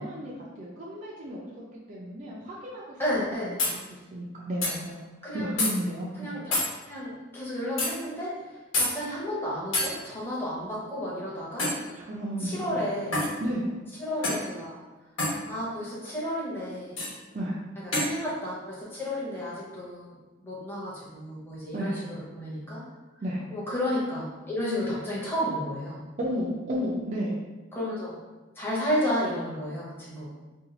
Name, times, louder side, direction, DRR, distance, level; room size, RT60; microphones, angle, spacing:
voice 1, 0.0-1.4 1.9-3.6 4.1-5.0 5.3-6.3 12.0-12.8 13.4-13.7 17.3-17.6 21.7-22.0 23.2-23.5 26.2-27.4, equal, 40° right, -5 dB, 0.5 m, -33 dB
voice 2, 3.0-3.6 5.2-5.5 6.2-6.6 6.9-11.7 12.4-13.2 14.0-14.8 15.5-17.0 17.8-22.8 23.5-26.0 27.7-28.2 28.6-30.3, equal, 10° left, -7 dB, 0.8 m, -32 dB
sound 1, 3.1-3.2 3.6-3.8 4.6-4.7 5.6-5.7 6.5-6.7 7.8-7.9 8.7-8.9 9.7-9.9 11.6-11.8 13.1-13.3 14.2-14.5 15.2-15.4 17.0-17.1 17.9-18.1, left 2 dB, 80° left, 1.1 m, -26 dB
2.7 x 2.4 x 3.9 m, 1.2 s
head